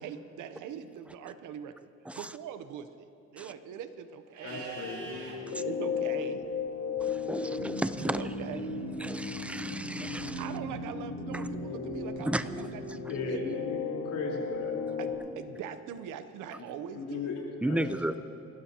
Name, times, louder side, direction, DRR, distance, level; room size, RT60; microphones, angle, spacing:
voice 1, 0.0-1.9 2.2-4.6 5.6-6.4 8.2-8.7 10.4-13.4 15.0-15.1 15.4-17.3, right 9 dB, 90° right, 10 dB, 0.8 m, -42 dB
Livestock farm animals working animals, 4.3-5.4 8.2-9.2, right 4 dB, 70° right, 3.5 m, -45 dB
voice 2, 4.4-5.2 13.1-14.7 16.5-16.6 17.0-17.8, left 4 dB, 75° left, -2 dB, 3.9 m, -37 dB
sound 1, 4.8-15.2, left 4 dB, 45° left, 4.3 m, -35 dB
voice 3, 7.0-8.3 9.0-10.5 11.3-11.5 12.3-12.5 17.6-18.2, right 1 dB, 5° right, 12 dB, 0.6 m, -33 dB
29.5 x 12.5 x 2.9 m, 2.9 s
cardioid pair, 90°, 30 cm